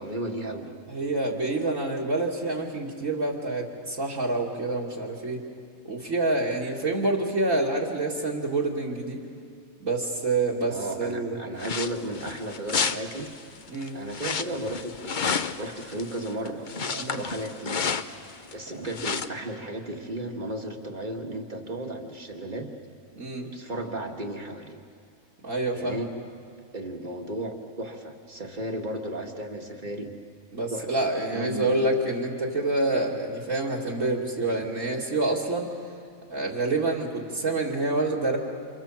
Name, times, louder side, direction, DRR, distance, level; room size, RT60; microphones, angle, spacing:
voice 1, 0.0-0.7 10.6-13.3 13.9-17.8 18.4-22.7 23.4-24.8 25.7-26.1 26.7-30.1 30.7-31.9, right 1 dB, 30° right, 3 dB, 2.0 m, -34 dB
voice 2, 0.9-5.4 5.8-9.2 9.8-11.4 13.7-13.9 17.0-17.2 23.2-23.5 25.4-26.0 30.5-35.7 36.3-38.4, right 2 dB, 60° right, -1 dB, 2.8 m, -27 dB
sound 1, 11.6-18.5 18.8-19.3, left 5 dB, 40° left, 0.8 m, -31 dB
29.0 x 27.5 x 7.4 m, 2.4 s
omnidirectional pair, 1.5 m